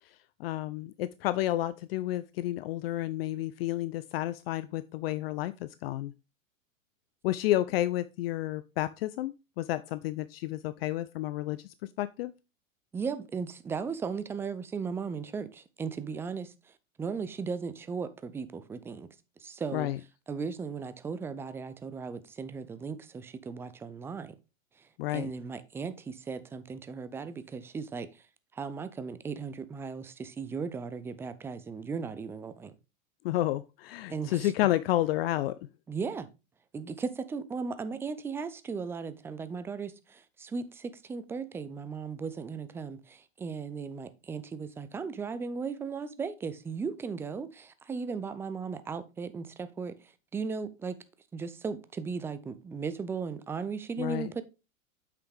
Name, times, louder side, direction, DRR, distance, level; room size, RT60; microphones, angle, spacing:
voice 1, 0.4-6.1 7.2-11.6 12.0-12.3 19.7-20.0 25.0-25.3 33.2-35.6 54.0-54.3, left 15 dB, 50° left, 0.5 m, -31 dB
voice 2, 12.9-16.5 17.0-19.1 19.4-19.9 20.3-24.4 25.1-28.1 28.5-32.7 34.1-34.5 35.9-36.3 36.7-50.0 50.3-51.0 51.3-54.4, right 5 dB, 5° right, 0.3 m, -36 dB
7.6 x 5.9 x 3.4 m
hypercardioid pair, 100°, 39 cm